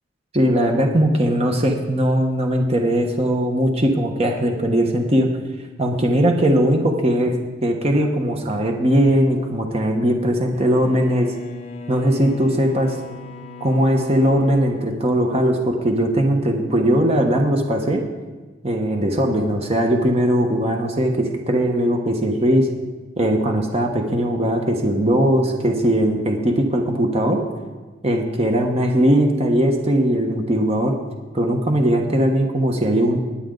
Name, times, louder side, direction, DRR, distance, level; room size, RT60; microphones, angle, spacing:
voice 1, 0.3-5.3 5.8-7.3 7.6-11.3 11.9-13.0 13.6-18.0 18.6-22.7 23.2-27.4 28.0-31.0 31.3-33.2, right 1 dB, 30° right, 3 dB, 1.2 m, -19 dB
Bowed string instrument, 10.5-15.9, left 3 dB, 35° left, 1.0 m, -39 dB
21.5 x 8.8 x 3.9 m, 1.3 s
head